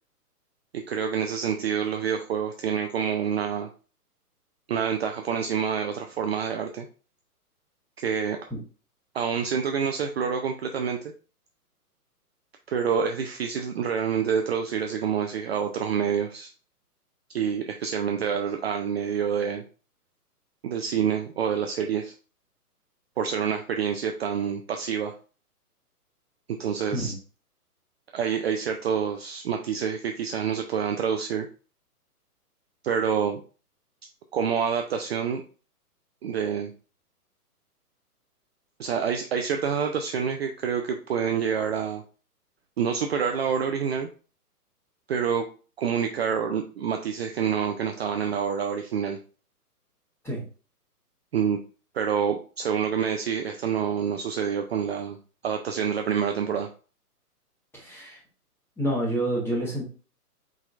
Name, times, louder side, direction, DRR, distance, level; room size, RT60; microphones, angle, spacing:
voice 1, 0.7-3.7 4.7-6.9 8.0-8.5 9.1-11.0 12.7-16.5 17.3-19.6 20.6-22.1 23.2-25.1 26.6-27.1 28.1-31.5 32.8-33.4 34.3-35.4 36.2-36.7 38.8-42.0 42.8-44.1 45.1-45.5 45.8-49.2 51.3-51.6 51.9-55.2 55.4-56.7, right 7 dB, 45° right, 4 dB, 0.5 m, -27 dB
voice 2, 57.7-58.2 58.8-59.8, right 1 dB, 5° left, -4 dB, 1.5 m, -28 dB
4.7 x 4.0 x 2.5 m, 0.36 s
hypercardioid pair, 135°, 47 cm